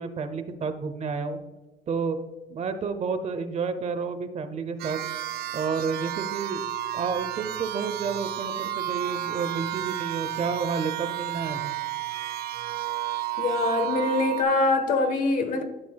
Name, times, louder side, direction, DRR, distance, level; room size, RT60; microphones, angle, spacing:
voice 1, 0.0-1.4 1.9-2.2 2.5-5.0 5.5-6.6 6.9-11.7, right 5 dB, 40° right, 0.8 m, -30 dB
sound 1, 4.8-14.4, right 13 dB, 65° right, 0.5 m, -32 dB
voice 2, 13.4-15.6, left 3 dB, 50° left, 1.3 m, -24 dB
12.0 x 6.0 x 2.3 m
cardioid pair, 110°, 17 cm